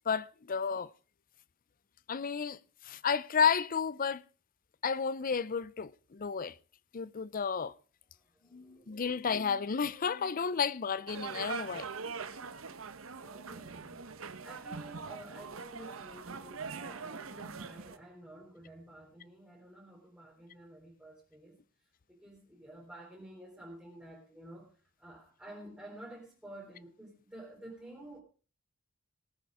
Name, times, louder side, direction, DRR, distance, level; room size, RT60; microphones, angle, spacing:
voice 1, 0.1-0.9 2.1-2.6 2.8-4.2 4.8-6.5 6.9-7.7 8.5-11.9, left 6 dB, 40° left, 0.5 m, -32 dB
voice 2, 8.4-9.0 13.2-21.6 22.1-24.7 25.0-28.2, right 1 dB, 5° right, 3.8 m, -51 dB
sound 1, 11.1-18.0, right 5 dB, 75° right, 1.0 m, -42 dB
19.0 x 8.9 x 4.9 m
head